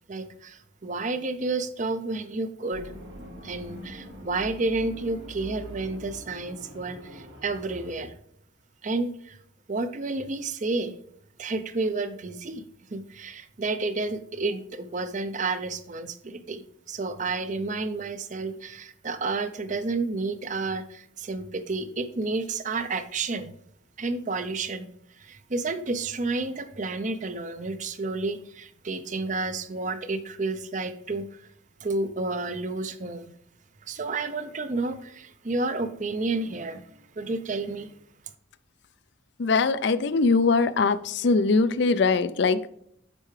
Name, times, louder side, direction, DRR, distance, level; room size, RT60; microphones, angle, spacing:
voice 1, 0.1-2.9 3.4-8.1 8.8-9.4 9.7-10.9 11.4-12.6 12.9-23.5 24.0-24.9 25.2-31.4 31.8-33.3 33.9-36.8 37.2-37.9, right 3 dB, 35° right, 10 dB, 0.5 m, -30 dB
sound 1, 2.7-8.1, equal, 75° right, 2.3 m, -43 dB
voice 2, 39.4-42.7, left 4 dB, 55° left, 15 dB, 0.4 m, -22 dB
8.2 x 5.5 x 3.2 m, 0.71 s
head